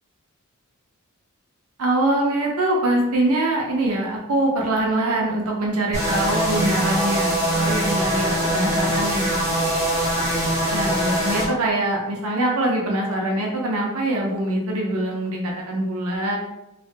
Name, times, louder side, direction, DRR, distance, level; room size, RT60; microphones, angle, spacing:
voice 1, 1.8-9.7 10.7-16.4, right 1 dB, 75° right, -1 dB, 0.6 m, -23 dB
sound 1, 5.9-11.5, right 1 dB, 15° right, 0.9 m, -22 dB
3.1 x 2.1 x 2.7 m, 0.90 s
head